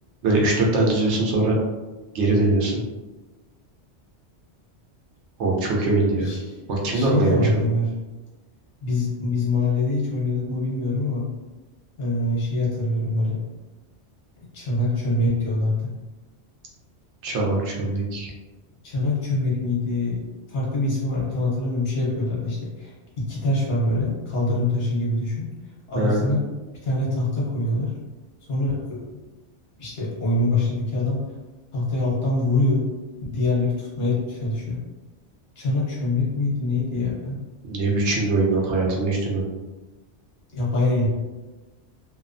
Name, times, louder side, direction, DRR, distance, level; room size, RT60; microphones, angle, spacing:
voice 1, 0.2-1.6 2.1-2.8 5.4-6.3 6.7-7.4 17.2-18.3 26.0-26.2 37.6-39.4, right 2 dB, 85° right, -1 dB, 0.9 m, -22 dB
voice 2, 6.2-6.6 6.9-7.9 8.8-11.3 12.0-13.4 14.5-15.9 18.8-20.2 20.5-25.5 25.9-26.4 26.8-27.9 28.5-29.2 29.8-31.2 31.7-32.8 33.3-34.8 35.6-37.4 40.5-41.1, left 2 dB, 60° left, -6 dB, 1.1 m, -24 dB
2.7 x 2.0 x 2.4 m, 1.2 s
omnidirectional pair, 1.2 m